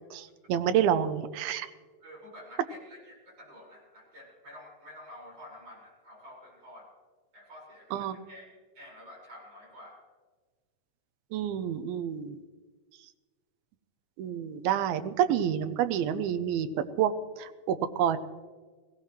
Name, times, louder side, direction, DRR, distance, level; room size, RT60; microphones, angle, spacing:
voice 1, 0.1-1.7 7.9-8.2 11.3-12.4 14.2-18.2, right 9 dB, 85° right, 11 dB, 2.5 m, -28 dB
voice 2, 2.0-6.9 7.3-10.0 14.7-14.8, left 1 dB, 40° right, -4 dB, 5.8 m, -50 dB
19.0 x 16.0 x 3.1 m, 1.4 s
omnidirectional pair, 4.5 m